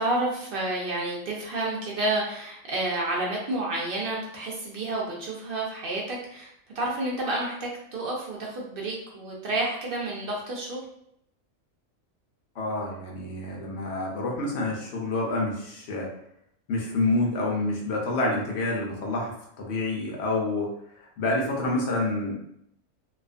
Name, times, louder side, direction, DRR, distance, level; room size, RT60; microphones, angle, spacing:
voice 1, 0.0-6.5 6.7-10.8, right 2 dB, 65° right, -3 dB, 0.6 m, -30 dB
voice 2, 12.6-16.1 16.7-19.3 19.6-22.3, left 2 dB, 65° left, -2 dB, 0.8 m, -28 dB
2.4 x 2.3 x 2.4 m, 0.74 s
omnidirectional pair, 1.4 m